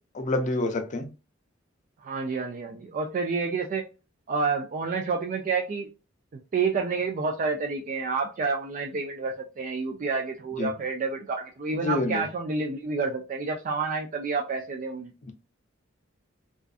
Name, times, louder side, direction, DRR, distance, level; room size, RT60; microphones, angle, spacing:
voice 1, 0.1-1.1 10.6-10.7 11.7-12.2 15.2-15.3, left 2 dB, 40° left, 0.5 m, -27 dB
voice 2, 2.0-3.8 4.3-5.9 6.5-15.1, right 4 dB, 40° right, 0.3 m, -29 dB
2.4 x 2.4 x 2.3 m
head